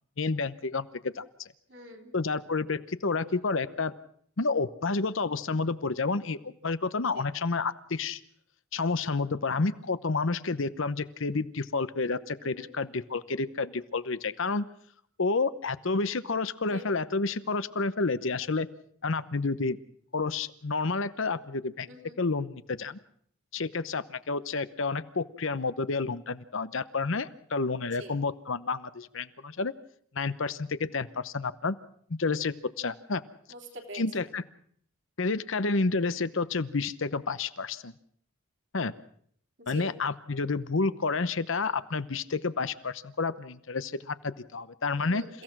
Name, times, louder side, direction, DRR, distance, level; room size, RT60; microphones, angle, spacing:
voice 1, 0.2-1.5 2.1-3.9 4.4-8.2 8.7-14.6 15.2-18.7 19.0-19.8 20.1-21.9 22.2-23.0 23.5-29.7 30.1-31.7 32.2-33.2 33.9-34.4 35.2-37.9 38.7-38.9 39.7-45.2, left 3 dB, 65° left, 14 dB, 0.9 m, -30 dB
voice 2, 1.7-2.1 7.1-7.3 12.4-12.7 16.7-16.8 21.9-22.1 28.0-28.2 33.5-34.0 39.6-39.9 45.0-45.4, equal, 55° right, 3 dB, 3.5 m, -45 dB
29.0 x 16.0 x 6.1 m, 0.63 s
head